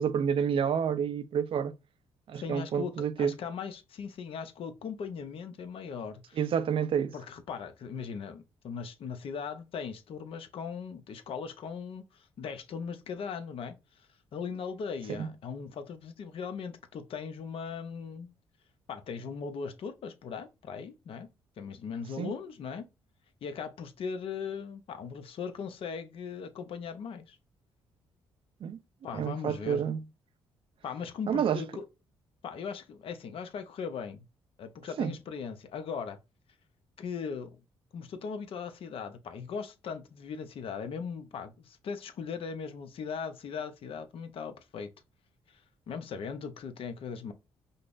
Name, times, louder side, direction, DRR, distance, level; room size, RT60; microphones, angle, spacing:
voice 1, 0.0-1.7 2.3-3.3 6.4-7.1 15.1-15.3 22.2-22.3 28.6-28.8 29.1-30.0 31.3-31.6 35.0-35.1, right 8 dB, 60° right, 0.5 m, -29 dB
voice 2, 2.3-6.4 7.1-13.8 14.3-18.3 18.9-21.3 21.6-22.8 23.4-27.4 29.0-29.8 30.8-31.8 32.4-34.2 34.6-36.2 37.0-37.6 37.9-44.9 45.9-47.3, left 6 dB, 65° left, 0.7 m, -39 dB
5.3 x 2.0 x 2.5 m
supercardioid pair, 70°, 10 cm